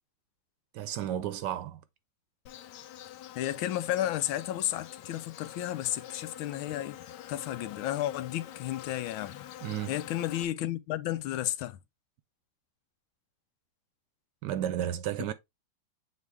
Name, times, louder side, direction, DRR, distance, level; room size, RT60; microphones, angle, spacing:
voice 1, 0.7-1.8 9.6-10.0 14.4-15.3, right 11 dB, 75° right, 1.1 m, -33 dB
Insect, 2.5-10.5, left 11 dB, 70° left, 1.2 m, -46 dB
voice 2, 3.4-7.0 7.3-9.5 9.9-11.8, left 13 dB, 90° left, 1.5 m, -32 dB
7.1 x 4.2 x 3.4 m
omnidirectional pair, 2.2 m